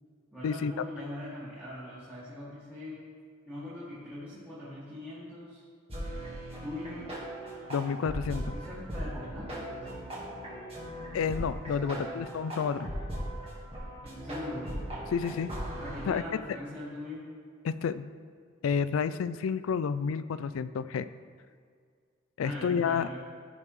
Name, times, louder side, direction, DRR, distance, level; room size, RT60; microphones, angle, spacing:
voice 1, 0.3-3.0 3.5-5.6 6.6-7.1 8.5-9.7 11.8-12.2 14.2-14.7 15.8-17.3 22.4-23.2, left 1 dB, 5° right, -13 dB, 2.0 m, -41 dB
sound 1, 5.9-16.1, equal, 30° right, 1.6 m, -38 dB
voice 2, 7.7-8.6 11.1-12.9 15.1-15.5 16.1-16.2 17.6-18.1 18.6-21.1 22.4-23.1, left 6 dB, 75° left, 15 dB, 0.3 m, -30 dB
14.5 x 5.5 x 3.2 m, 2.1 s
head